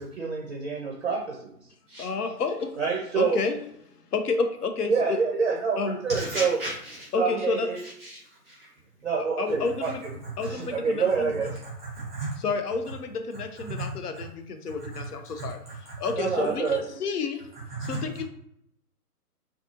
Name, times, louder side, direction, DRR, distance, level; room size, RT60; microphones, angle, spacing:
voice 1, 0.0-1.5 2.8-3.4 4.9-6.6 7.2-7.8 9.0-9.9 10.4-11.5 16.2-16.8, right 5 dB, 45° right, -1 dB, 0.5 m, -27 dB
voice 2, 2.0-2.8 3.2-3.6 4.1-5.2 5.8-6.0 7.1-7.7 9.4-10.0 10.4-11.4 12.4-15.6 16.0-17.4 17.8-18.2, left 4 dB, 70° left, 6 dB, 0.6 m, -30 dB
voice 3, 6.1-7.1 7.8-8.7 9.8-9.9 10.2-10.5 11.6-12.3 13.7-13.9 14.1-14.2 14.8-15.1 15.4-15.9 17.7-18.2, right 2 dB, 5° left, -7 dB, 0.6 m, -36 dB
2.5 x 2.3 x 2.7 m, 0.74 s
figure-of-eight pair, 140°, 48 cm